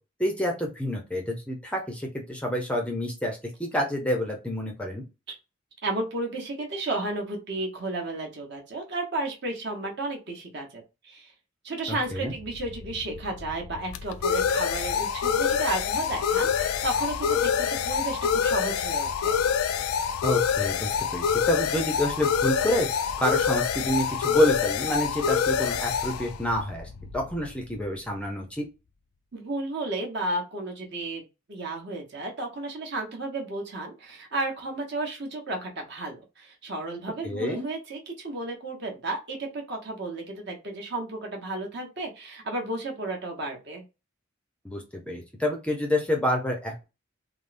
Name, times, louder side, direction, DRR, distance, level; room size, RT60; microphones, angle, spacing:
voice 1, 0.2-5.0 11.9-12.3 20.2-22.9 23.2-28.7 37.2-37.6 44.6-46.8, left 1 dB, 5° left, 1 dB, 0.5 m, -28 dB
voice 2, 5.8-11.3 11.6-19.3 29.3-43.8, right 2 dB, 50° right, 1 dB, 0.9 m, -33 dB
sound 1, 12.3-27.7, left 7 dB, 80° left, 0.3 m, -26 dB
3.4 x 2.0 x 2.5 m, 0.27 s
head